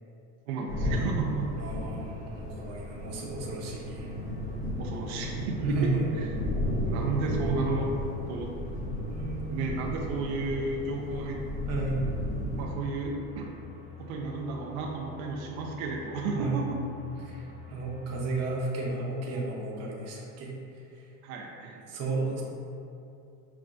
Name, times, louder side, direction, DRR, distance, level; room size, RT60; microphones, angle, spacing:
voice 1, 0.5-1.5 4.8-5.9 6.2-6.3 6.9-7.9 8.3-8.5 9.5-11.4 12.5-13.5 14.0-16.7 21.2-21.9, right 3 dB, 85° right, 0 dB, 0.5 m, -33 dB
sound 1, 0.7-18.4, left 5 dB, 15° left, 0.4 m, -48 dB
sound 2, 0.7-12.6, left 1 dB, 5° right, 1.0 m, -34 dB
voice 2, 1.6-4.1 5.6-6.1 9.1-9.5 11.7-12.0 16.3-16.6 17.2-20.5 20.9-21.1 21.9-22.4, right 3 dB, 40° right, -3 dB, 0.7 m, -33 dB
5.9 x 2.1 x 2.4 m, 2.6 s
supercardioid pair, 135°, 41 cm